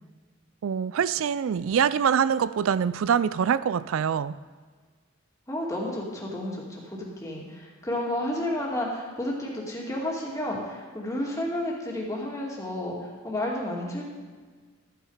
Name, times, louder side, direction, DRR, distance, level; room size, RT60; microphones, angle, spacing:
voice 1, 0.6-4.3, right 7 dB, 80° right, 16 dB, 0.4 m, -24 dB
voice 2, 5.5-14.0, left 1 dB, 15° left, -3 dB, 2.5 m, -31 dB
13.5 x 9.5 x 5.0 m, 1.5 s
head